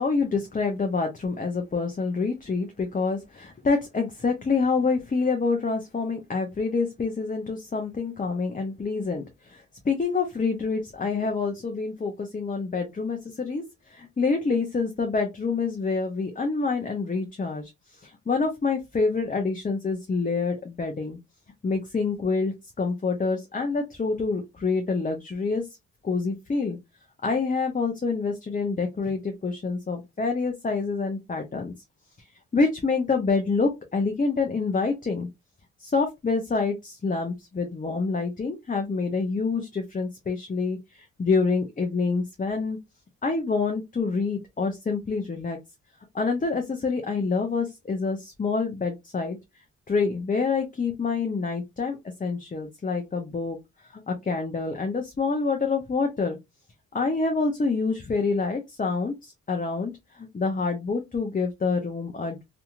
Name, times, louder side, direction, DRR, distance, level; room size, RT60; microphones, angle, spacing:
voice 1, 0.0-21.2 21.6-25.6 26.0-26.8 27.2-31.7 32.5-35.3 35.8-42.8 43.2-45.6 46.1-49.4 49.9-53.6 53.9-56.4 56.9-62.4, left 4 dB, 20° left, 3 dB, 0.6 m, -27 dB
2.8 x 2.5 x 2.3 m, 0.21 s
supercardioid pair, 45°, 38 cm